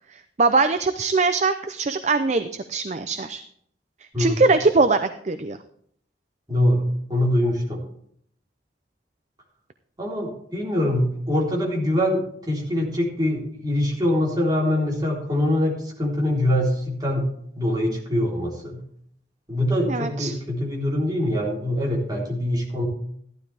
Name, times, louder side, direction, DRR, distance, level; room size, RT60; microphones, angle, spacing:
voice 1, 0.1-3.4 4.2-5.6 19.8-20.3, right 3 dB, 40° right, 9 dB, 0.5 m, -22 dB
voice 2, 4.1-4.5 6.5-6.8 7.1-7.8 10.0-17.3 17.5-18.8 19.5-22.9, left 1 dB, 25° right, -3 dB, 3.7 m, -23 dB
14.5 x 12.0 x 3.4 m, 0.66 s
head